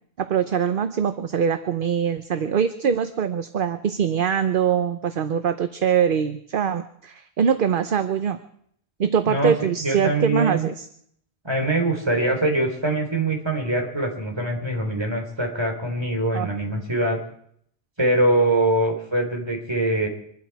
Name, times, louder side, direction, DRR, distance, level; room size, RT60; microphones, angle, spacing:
voice 1, 0.2-8.4 9.0-10.9 16.3-16.5, right 7 dB, 55° right, 10 dB, 0.9 m, -23 dB
voice 2, 9.8-10.7 11.4-17.2 18.0-20.1, right 2 dB, 25° right, 2 dB, 3.7 m, -23 dB
25.0 x 12.0 x 4.7 m, 0.67 s
omnidirectional pair, 1.1 m